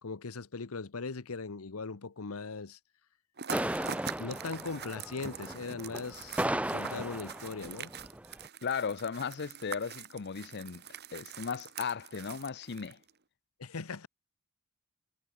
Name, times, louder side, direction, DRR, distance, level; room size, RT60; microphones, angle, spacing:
voice 1, 0.0-2.8 4.2-7.9 13.6-14.1, left 4 dB, 85° left, 1.0 m, -39 dB
sound 1, 3.4-13.1, right 8 dB, 50° right, 2.5 m, -44 dB
sound 2, 3.5-8.5, right 1 dB, 5° right, 1.1 m, -36 dB
voice 2, 8.6-10.8 11.1-13.0, left 6 dB, 50° left, 0.6 m, -36 dB
head